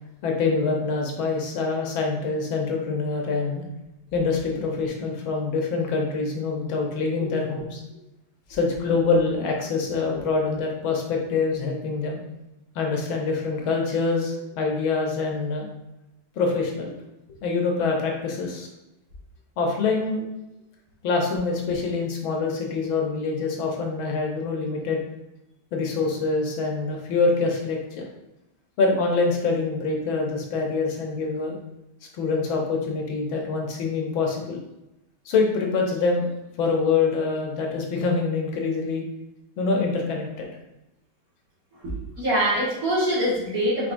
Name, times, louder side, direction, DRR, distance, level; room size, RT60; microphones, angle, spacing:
voice 1, 0.2-3.6 4.1-7.8 8.5-12.2 12.7-15.7 16.4-16.9 17.4-18.7 19.6-20.2 21.0-25.0 25.7-28.0 28.8-31.6 32.1-34.6 35.3-36.3 36.6-39.0 39.6-40.5, left 4 dB, 75° left, 0 dB, 1.5 m, -25 dB
voice 2, 41.8-43.9, right 1 dB, 45° right, -9 dB, 2.1 m, -24 dB
4.9 x 3.9 x 2.5 m, 0.93 s
omnidirectional pair, 2.3 m